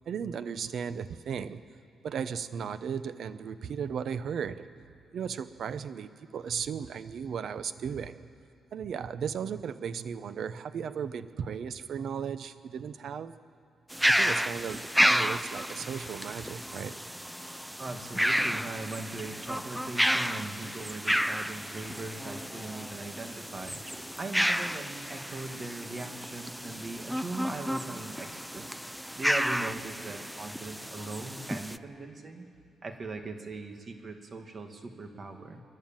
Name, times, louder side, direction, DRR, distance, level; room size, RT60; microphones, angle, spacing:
voice 1, 0.0-1.6 2.0-4.7 5.1-8.3 8.7-13.3 14.0-17.0, right 7 dB, 65° right, 13 dB, 0.8 m, -36 dB
sound 1, 13.9-31.8, equal, ahead, 0.4 m, -31 dB
voice 2, 17.8-28.7 29.2-32.5 32.8-35.6, right 3 dB, 40° right, 5 dB, 2.1 m, -40 dB
27.5 x 11.5 x 9.1 m, 2.4 s
cardioid pair, 110°, 0 cm